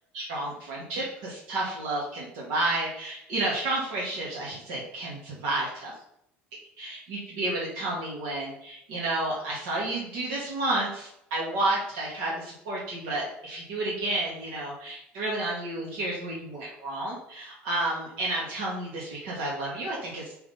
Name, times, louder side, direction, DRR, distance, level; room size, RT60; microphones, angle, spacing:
voice 1, 0.1-5.9 6.8-20.3, right 2 dB, 80° right, -5 dB, 1.9 m, -31 dB
5.6 x 3.7 x 5.5 m, 0.74 s
cardioid pair, 170°, 4 cm